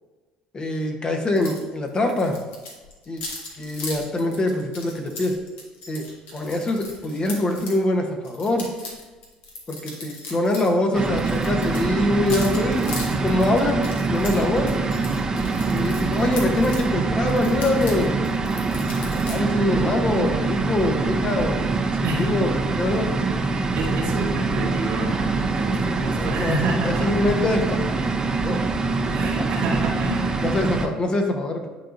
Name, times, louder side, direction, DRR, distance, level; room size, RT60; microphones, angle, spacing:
voice 1, 0.5-2.4 3.1-3.2 3.6-5.3 5.9-6.0 6.3-8.7 9.7-12.9 13.2-14.8 15.7-18.3 18.8-23.1 26.1-28.1 28.4-28.6 29.2-29.5 30.4-31.7, left 1 dB, 35° left, 3 dB, 1.1 m, -24 dB
sound 1, 1.4-1.6 1.9-7.8 8.2-10.7 11.0-16.8 17.3-19.4, left 3 dB, 70° left, 1.5 m, -38 dB
sound 2, 10.9-30.9, right 3 dB, 25° right, 0.8 m, -24 dB
voice 2, 22.0-22.4 23.7-27.2 29.1-30.4, right 2 dB, 70° right, -1 dB, 1.3 m, -28 dB
10.0 x 3.8 x 2.6 m, 1.3 s
hypercardioid pair, 70°, 3 cm